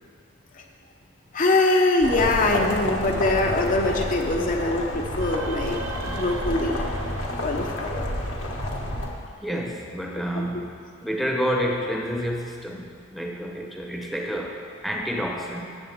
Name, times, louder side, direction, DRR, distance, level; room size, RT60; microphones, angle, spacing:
voice 1, 1.3-5.8 6.1-6.8 7.4-8.1, left 2 dB, 40° left, 1 dB, 0.7 m, -23 dB
sound 1, 2.0-9.1, left 1 dB, 90° left, 1.6 m, -29 dB
sound 2, 5.0-8.6, right 3 dB, 80° right, 0.7 m, -38 dB
voice 2, 9.4-15.7, equal, ahead, -1 dB, 0.9 m, -29 dB
18.5 x 7.5 x 3.6 m, 2.1 s
head